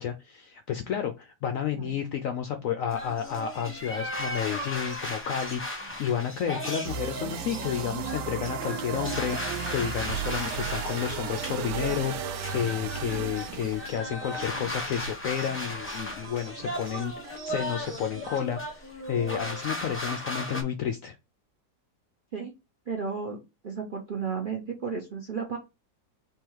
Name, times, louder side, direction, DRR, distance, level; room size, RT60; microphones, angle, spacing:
voice 1, 0.0-21.2, left 9 dB, 75° left, 0.7 m, -31 dB
sound 1, 2.9-20.6, left 1 dB, 10° left, 0.6 m, -36 dB
sound 2, 6.8-14.0, right 8 dB, 85° right, 1.2 m, -35 dB
sound 3, 10.1-18.4, right 4 dB, 70° right, 1.2 m, -46 dB
voice 2, 22.9-25.6, right 5 dB, 55° right, 0.5 m, -33 dB
3.6 x 2.9 x 4.5 m
omnidirectional pair, 1.8 m